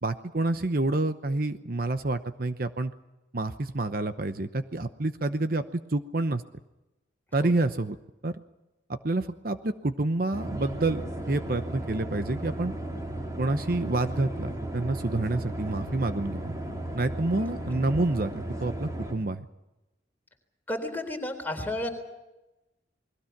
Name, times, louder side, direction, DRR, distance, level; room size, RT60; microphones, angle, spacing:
voice 1, 0.0-2.9 3.3-6.4 7.3-8.0 8.2-8.3 8.9-12.7 13.4-16.5 16.9-19.5, right 2 dB, 50° right, 10 dB, 0.9 m, -28 dB
sound 1, 10.3-19.1, right 1 dB, 20° right, 3.3 m, -35 dB
voice 2, 20.7-21.9, left 1 dB, 10° left, 3 dB, 3.8 m, -32 dB
29.0 x 21.0 x 6.0 m, 1.0 s
head